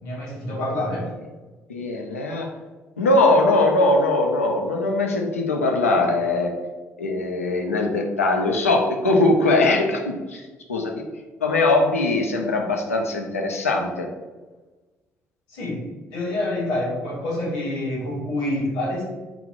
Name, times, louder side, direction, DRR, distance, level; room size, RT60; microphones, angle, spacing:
voice 1, 0.0-1.1 15.5-19.0, left 1 dB, 65° left, -5 dB, 1.1 m, -27 dB
voice 2, 1.7-2.5 3.0-6.6 7.0-10.4 10.7-11.1 11.4-14.1, left 2 dB, 85° left, 2 dB, 0.4 m, -21 dB
3.5 x 2.3 x 3.5 m, 1.2 s
figure-of-eight pair, 45°, 7 cm